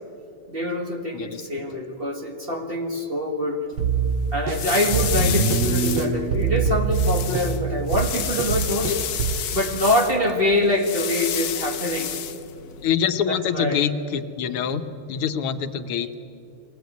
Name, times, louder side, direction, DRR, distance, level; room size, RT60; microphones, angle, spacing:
voice 1, 0.5-3.6 4.3-8.9 9.5-12.1 13.3-13.8, left 1 dB, 30° right, 2 dB, 1.8 m, -25 dB
voice 2, 1.1-1.7 5.2-5.4 8.9-9.0 12.8-16.2, left 8 dB, 85° left, 9 dB, 1.8 m, -26 dB
sound 1, 3.7-12.9, left 9 dB, 60° left, 1.1 m, -31 dB
sound 2, 3.8-9.4, right 5 dB, 85° right, 2.5 m, -24 dB
22.5 x 17.5 x 9.3 m, 2.7 s
omnidirectional pair, 2.3 m